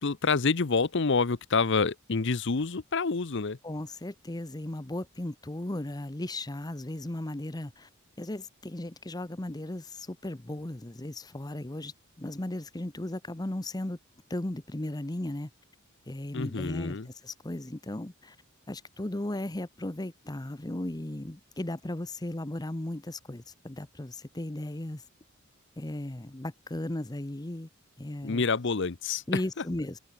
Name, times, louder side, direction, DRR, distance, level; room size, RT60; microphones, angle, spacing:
voice 1, 0.0-3.6 16.3-17.1 28.2-29.2, left 4 dB, 60° left, 0.8 m, -27 dB
voice 2, 3.6-7.9 8.2-14.0 14.3-15.5 16.1-18.4 18.7-25.0 25.8-27.7 28.0-28.4 29.3-30.0, left 1 dB, 20° left, 0.9 m, -36 dB
head